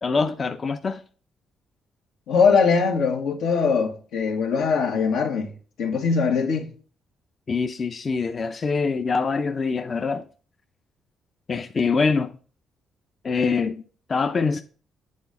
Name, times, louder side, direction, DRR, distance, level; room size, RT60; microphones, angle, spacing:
voice 1, 0.0-1.0 7.5-10.2 11.5-12.4 13.2-13.8 14.1-14.6, left 4 dB, 40° left, 0.6 m, -24 dB
voice 2, 2.3-5.5 5.8-6.7, left 5 dB, 85° left, 1.8 m, -21 dB
8.5 x 4.1 x 7.0 m
cardioid pair, 90°, 0 cm